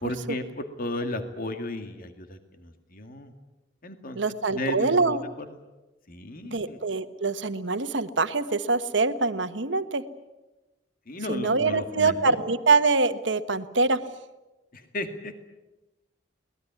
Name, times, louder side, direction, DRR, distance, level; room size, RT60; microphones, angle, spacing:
voice 1, 0.0-3.3 3.8-4.2 4.5-5.2 6.1-6.8 11.1-12.4 14.7-15.4, left 1 dB, 50° left, 7 dB, 2.1 m, -34 dB
voice 2, 4.1-5.2 6.5-10.0 11.3-14.0, right 3 dB, 75° right, 11 dB, 1.3 m, -24 dB
22.5 x 19.5 x 9.5 m, 1.1 s
head